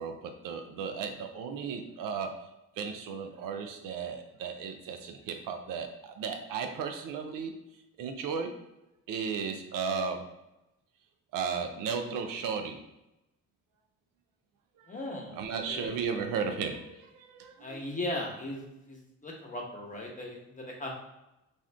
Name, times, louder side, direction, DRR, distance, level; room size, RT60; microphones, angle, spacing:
voice 1, 0.0-2.4 2.8-7.5 8.0-8.6 9.1-10.3 11.3-12.8 15.3-17.9, right 6 dB, 65° right, 5 dB, 0.5 m, -35 dB
voice 2, 14.9-15.4 15.7-16.0 17.6-18.6 18.9-19.0 19.2-21.0, left 1 dB, 20° left, -1 dB, 1.0 m, -37 dB
2.5 x 2.3 x 3.3 m, 0.93 s
supercardioid pair, 55°, 35 cm